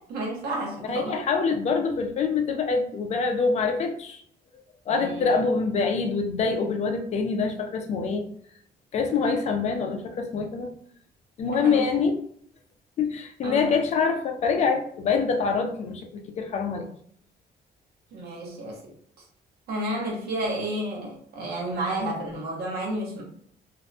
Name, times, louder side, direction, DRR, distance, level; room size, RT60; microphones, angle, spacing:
voice 1, 0.0-1.2 4.9-5.4 11.5-11.8 13.4-13.7 18.1-18.9 19.7-23.2, right 1 dB, 85° right, 0 dB, 0.8 m, -31 dB
voice 2, 0.9-4.2 4.9-8.2 8.9-10.7 11.4-12.1 13.0-16.9, left 5 dB, 45° left, 4 dB, 0.4 m, -25 dB
2.5 x 2.1 x 2.6 m, 0.63 s
cardioid pair, 165°, 16 cm